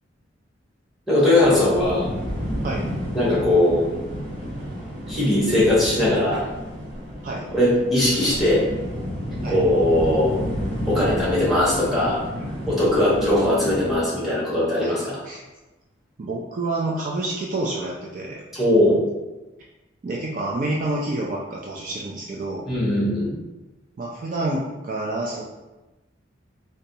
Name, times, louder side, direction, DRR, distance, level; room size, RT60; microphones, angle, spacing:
voice 1, 1.1-2.1 3.1-3.9 5.1-6.5 7.5-8.6 9.5-10.4 10.9-12.2 12.7-15.2 18.5-19.0 22.7-23.3, left 1 dB, ahead, -8 dB, 0.9 m, -20 dB
sound 1, 1.4-14.1, equal, 65° right, 1.4 m, -31 dB
voice 2, 12.3-12.8 14.8-15.0 15.2-15.4 16.2-18.4 20.0-22.6 24.0-25.4, right 2 dB, 40° right, -3 dB, 0.3 m, -28 dB
3.9 x 2.2 x 2.7 m, 1.1 s
head